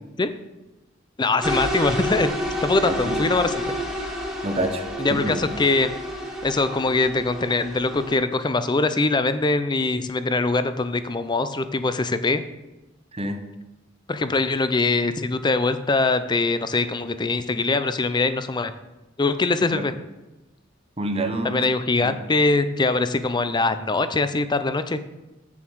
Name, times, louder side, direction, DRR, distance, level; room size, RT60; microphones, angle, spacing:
voice 1, 1.2-2.3 2.6-3.6 5.0-5.9 6.4-12.4 14.1-18.7 19.2-19.9 21.4-25.0, left 3 dB, 25° left, 11 dB, 0.5 m, -22 dB
sound 1, 1.4-8.2, equal, ahead, 1.4 m, -29 dB
voice 2, 4.4-5.3 13.1-13.4 19.7-19.8 21.0-21.6 22.0-22.2, right 1 dB, 30° right, 6 dB, 0.9 m, -27 dB
8.5 x 7.1 x 4.6 m, 1.0 s
head